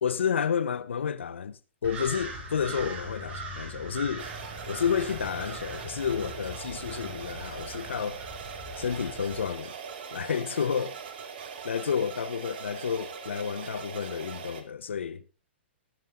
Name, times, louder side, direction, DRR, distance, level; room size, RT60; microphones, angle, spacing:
voice 1, 0.0-4.3 4.7-8.2 8.8-9.7 10.1-11.0 11.6-15.2, left 7 dB, 80° left, 1.1 m, -30 dB
sound 1, 1.8-9.5, right 2 dB, 30° right, 6.7 m, -41 dB
sound 2, 4.2-14.6, right 6 dB, 55° right, 2.7 m, -41 dB
20.0 x 7.7 x 4.0 m
hypercardioid pair, 125°, 6 cm